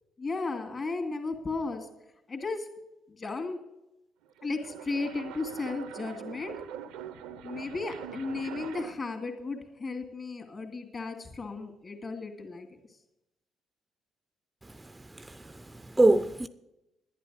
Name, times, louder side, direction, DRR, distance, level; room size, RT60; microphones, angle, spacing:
voice 1, 0.2-1.9 2.3-2.7 3.2-3.6 4.4-6.6 7.4-12.7, left 3 dB, 40° left, 2.5 m, -35 dB
sound 1, 4.2-9.1, right 8 dB, 75° right, 0.6 m, -43 dB
voice 2, 14.6-16.5, right 2 dB, 15° right, 0.5 m, -26 dB
11.0 x 10.0 x 6.3 m
hypercardioid pair, 50°, 0 cm